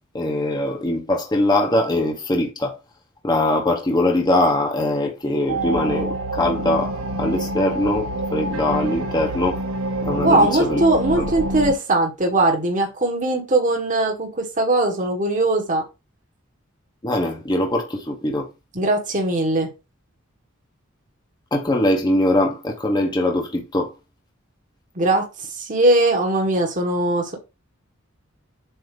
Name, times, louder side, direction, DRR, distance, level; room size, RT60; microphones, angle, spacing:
voice 1, 0.1-2.7 3.2-9.6 10.0-10.8 11.2-11.3 17.0-18.5 21.5-23.9, left 1 dB, 20° left, 1.0 m, -22 dB
sound 1, 5.5-11.7, right 1 dB, 75° right, 1.0 m, -27 dB
voice 2, 10.2-15.8 18.7-19.7 24.9-27.4, right 2 dB, 40° right, 1.6 m, -20 dB
7.9 x 2.8 x 5.1 m
head